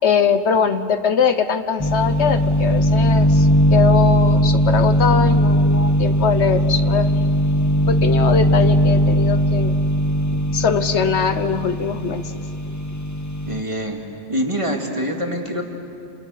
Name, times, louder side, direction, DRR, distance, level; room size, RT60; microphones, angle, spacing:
voice 1, 0.0-7.3 7.9-9.7 10.5-12.2, left 6 dB, 70° left, 10 dB, 1.2 m, -21 dB
sound 1, 1.8-13.6, equal, 15° left, 0.8 m, -18 dB
voice 2, 13.5-14.0 14.3-15.6, equal, 25° right, 1 dB, 2.5 m, -24 dB
30.0 x 27.5 x 6.7 m, 2.6 s
omnidirectional pair, 1.2 m